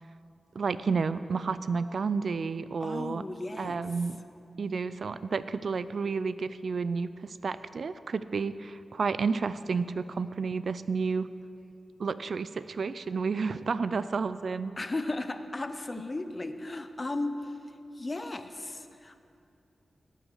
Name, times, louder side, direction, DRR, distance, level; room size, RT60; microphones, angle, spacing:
voice 1, 0.6-3.2 3.6-4.2 4.6-11.3 12.0-14.7, right 5 dB, 65° right, 14 dB, 0.4 m, -31 dB
voice 2, 2.8-3.8 14.8-17.5 18.0-19.2, left 2 dB, 30° left, 9 dB, 0.7 m, -35 dB
18.0 x 6.2 x 6.4 m, 2.6 s
wide cardioid pair, 80°, 0 cm